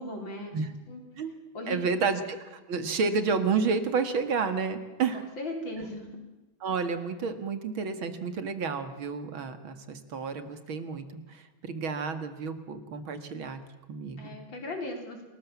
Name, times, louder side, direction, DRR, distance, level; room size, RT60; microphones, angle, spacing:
voice 1, 0.0-0.5 0.9-1.0 1.5-2.1 5.1-6.1 14.2-15.2, left 1 dB, 65° left, 3 dB, 5.3 m, -37 dB
voice 2, 1.7-5.2 6.6-13.6 13.9-14.3, right 5 dB, 80° right, 9 dB, 2.8 m, -30 dB
28.5 x 20.0 x 7.3 m, 1.1 s
omnidirectional pair, 2.2 m